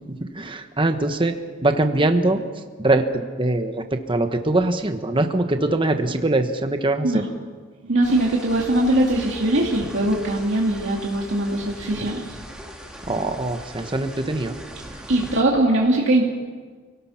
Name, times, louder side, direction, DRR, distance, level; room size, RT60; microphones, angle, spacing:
voice 1, 0.3-1.3 1.6-2.4 2.8-7.2 13.1-14.5, right 2 dB, 25° right, 6 dB, 1.3 m, -22 dB
voice 2, 7.8-12.4 15.1-16.2, right 1 dB, 65° right, -2 dB, 2.6 m, -21 dB
sound 1, 8.0-15.4, equal, 5° right, 3.0 m, -40 dB
28.5 x 18.5 x 5.9 m, 1.5 s
head